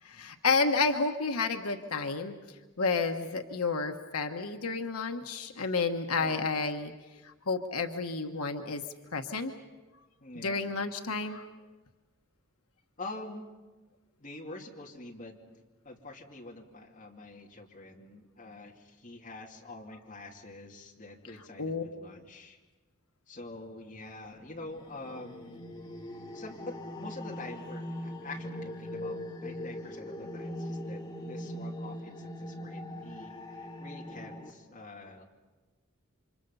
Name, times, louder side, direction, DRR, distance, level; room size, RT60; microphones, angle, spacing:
voice 1, 0.0-2.3 2.8-6.9 7.2-8.8 9.1-9.5 10.4-11.5 21.6-21.8, left 4 dB, 90° left, 5 dB, 1.2 m, -30 dB
voice 2, 10.2-10.7 13.0-13.5 14.2-15.3 15.8-22.6 23.3-25.7 26.3-35.2, left 2 dB, 35° left, -1 dB, 2.7 m, -46 dB
sound 1, 24.3-34.5, left 1 dB, 20° left, 1.7 m, -41 dB
29.5 x 25.5 x 5.6 m, 1.2 s
head